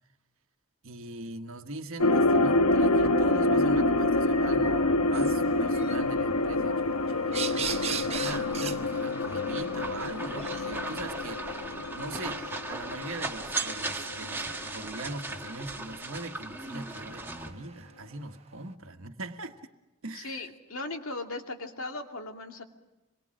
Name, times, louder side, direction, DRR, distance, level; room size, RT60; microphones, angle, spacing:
voice 1, 0.8-19.6 20.0-20.5, right 2 dB, 65° right, 5 dB, 1.5 m, -41 dB
sound 1, 2.0-14.3 14.5-14.6, left 2 dB, 85° left, 1.1 m, -27 dB
sound 2, 5.1-18.5, right 7 dB, 30° right, 0.9 m, -42 dB
sound 3, 7.6-17.5, right 2 dB, 10° right, 1.5 m, -38 dB
voice 2, 20.1-22.6, left 2 dB, 65° left, 4 dB, 2.5 m, -37 dB
26.5 x 22.5 x 6.3 m, 1.0 s
head